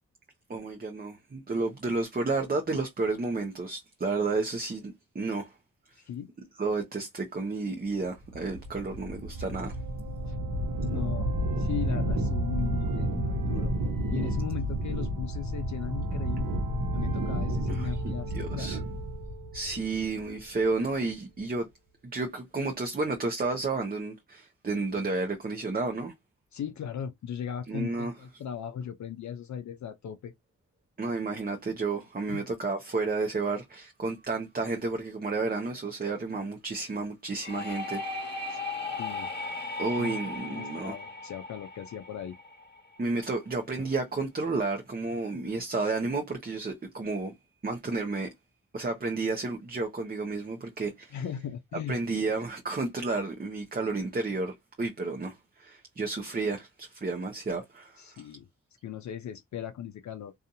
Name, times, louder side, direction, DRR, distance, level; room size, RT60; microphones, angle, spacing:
voice 1, 0.5-5.5 6.6-9.8 17.7-18.8 19.5-21.7 22.1-26.1 27.7-28.1 31.0-38.6 39.8-40.9 43.0-47.3 47.6-48.3 48.7-51.2 51.9-58.3, right 3 dB, 25° right, 0.8 m, -31 dB
voice 2, 6.0-6.3 10.3-10.4 10.8-11.3 11.6-13.7 14.1-16.6 16.9-18.8 26.5-30.3 32.3-32.4 38.5-38.6 39.0-39.3 40.0-42.4 51.1-52.0 58.0-58.5 58.8-60.3, left 8 dB, 55° left, 0.5 m, -38 dB
sound 1, 8.3-20.4, right 1 dB, 70° right, 0.9 m, -31 dB
sound 2, 37.4-43.0, left 3 dB, 30° left, 1.4 m, -37 dB
2.6 x 2.4 x 2.5 m
supercardioid pair, 45°, 34 cm